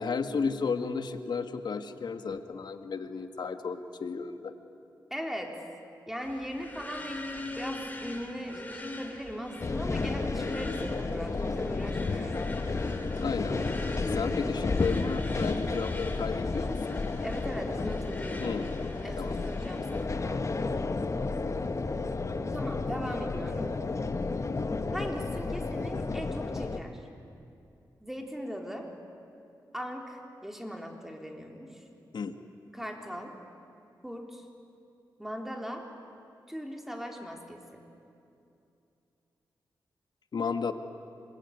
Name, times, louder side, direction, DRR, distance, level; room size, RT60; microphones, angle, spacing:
voice 1, 0.0-4.5 13.1-13.5 14.1-17.0 18.4-18.7 19.1-19.4 32.1-32.4 40.3-40.7, left 5 dB, 65° left, 8 dB, 1.6 m, -33 dB
voice 2, 5.1-5.6 6.1-12.5 17.2-18.6 19.0-20.5 22.5-23.7 24.9-27.0 28.0-28.9 29.7-31.8 32.7-33.3 34.0-34.5 35.2-35.9 36.5-37.8, equal, 5° right, 2 dB, 3.8 m, -39 dB
sound 1, 6.2-20.0, left 2 dB, 20° left, 3.6 m, -44 dB
sound 2, 9.6-26.8, left 3 dB, 40° left, 1.3 m, -32 dB
26.5 x 21.5 x 9.6 m, 2.7 s
cardioid pair, 75°, 8 cm